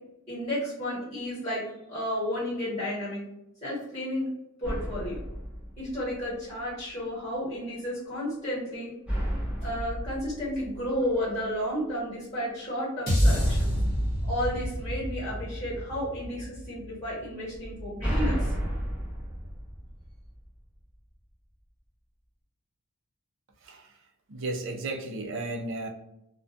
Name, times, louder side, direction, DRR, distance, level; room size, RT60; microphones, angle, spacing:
voice 1, 0.3-3.2 3.6-4.3 4.6-5.2 5.8-8.9 9.6-13.7 14.3-18.5, equal, 20° left, -9 dB, 1.2 m, -32 dB
sound 1, 4.6-6.5 9.1-11.5 13.3-15.6 17.5-20.6, equal, 5° right, 0.7 m, -33 dB
sound 2, 13.1-17.4, equal, 45° left, 0.8 m, -28 dB
voice 2, 24.3-25.9, right 2 dB, 60° right, 3 dB, 0.4 m, -34 dB
2.2 x 2.2 x 2.6 m, 0.86 s
head